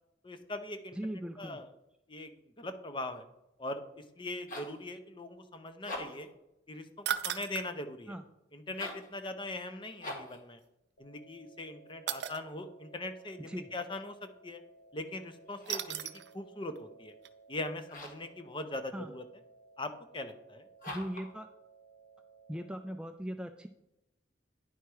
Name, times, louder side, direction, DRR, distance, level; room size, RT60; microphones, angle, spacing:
voice 1, 0.2-1.0 1.4-1.7 2.1-3.2 3.6-6.3 6.7-8.1 8.5-10.6 11.0-14.6 14.9-16.1 16.3-17.1 17.5-19.2 19.8-20.6, left 2 dB, 25° left, 8 dB, 0.7 m, -41 dB
voice 2, 0.9-1.6 8.1-8.2 13.4-13.7 18.9-19.1 20.9-21.5 22.5-23.7, equal, 5° right, 6 dB, 0.3 m, -39 dB
sound 1, 4.2-4.8 5.7-6.3 8.7-9.1 10.0-10.4 15.5-16.0 17.9-18.3 20.8-21.3, left 1 dB, 50° left, 1.7 m, -43 dB
sound 2, 7.0-7.7 10.1-10.2 12.1-12.4 15.6-16.3 16.7-16.8 17.2-17.3, right 10 dB, 65° right, 0.5 m, -35 dB
sound 3, 11.0-23.0, right 4 dB, 85° left, 1.2 m, -59 dB
10.0 x 4.6 x 4.6 m, 0.86 s
head